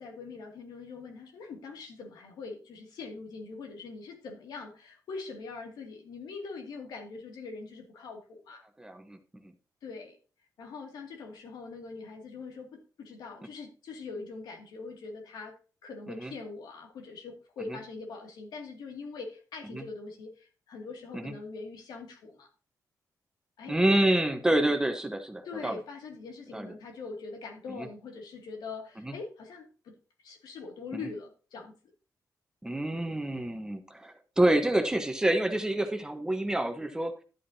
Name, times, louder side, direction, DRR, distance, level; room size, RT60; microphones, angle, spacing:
voice 1, 0.0-8.6 9.8-10.2 10.6-15.5 15.8-22.5 23.6-23.8 25.4-31.7, left 4 dB, 85° left, 2 dB, 2.3 m, -43 dB
voice 2, 8.8-9.5 16.1-16.3 19.7-19.8 21.1-21.3 23.7-25.8 26.5-26.7 27.7-27.9 29.0-29.1 30.9-31.0 32.6-37.1, right 1 dB, 10° right, 7 dB, 1.0 m, -28 dB
12.0 x 8.4 x 2.8 m, 0.35 s
cardioid pair, 120°, 7 cm